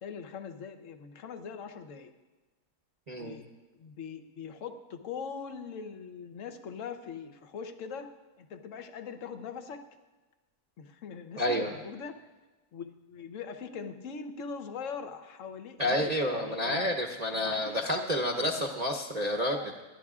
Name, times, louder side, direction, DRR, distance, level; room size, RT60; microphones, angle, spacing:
voice 1, 0.0-2.1 3.2-3.4 3.7-8.1 8.4-9.8 10.8-12.3 12.7-16.9 17.3-18.7 19.5-19.8, left 6 dB, 60° left, 8 dB, 1.2 m, -42 dB
voice 2, 3.1-3.4 11.4-11.7 15.8-19.7, left 1 dB, 35° right, 1 dB, 0.8 m, -29 dB
28.0 x 11.5 x 2.4 m, 1.2 s
omnidirectional pair, 1.6 m